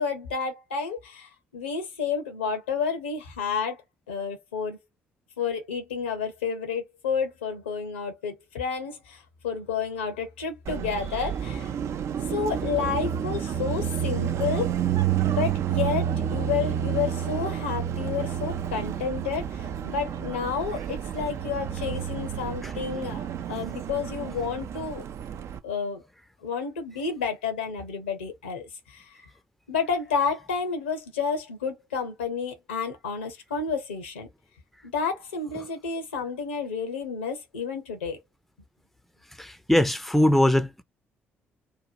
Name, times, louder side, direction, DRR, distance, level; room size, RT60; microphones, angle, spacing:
voice 1, 0.0-3.8 4.1-4.8 5.4-11.7 12.3-14.7 15.3-25.0 25.6-26.0 26.4-29.1 29.7-34.3 34.8-38.2, left 6 dB, 85° left, 0.7 m, -30 dB
Car passing by, 10.7-25.6, right 9 dB, 55° right, 0.4 m, -30 dB
voice 2, 39.4-40.8, left 1 dB, ahead, 0.5 m, -21 dB
2.9 x 2.2 x 2.5 m
figure-of-eight pair, 45°, 6 cm